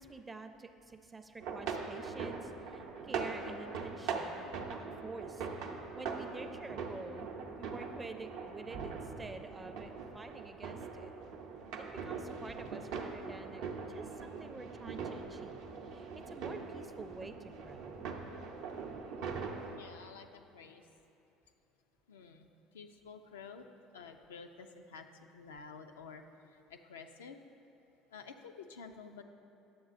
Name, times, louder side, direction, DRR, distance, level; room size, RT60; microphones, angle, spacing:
voice 1, 0.0-7.3 7.6-11.1 11.8-15.6 15.9-18.0, right 3 dB, 20° right, 8 dB, 0.4 m, -48 dB
sound 1, 1.4-19.8, right 5 dB, 70° right, 0.6 m, -42 dB
voice 2, 19.6-20.8 22.1-23.7 23.9-27.4 28.1-29.2, left 5 dB, 85° left, 6 dB, 0.3 m, -51 dB
10.0 x 7.2 x 2.5 m, 2.9 s
hypercardioid pair, 65°, 0 cm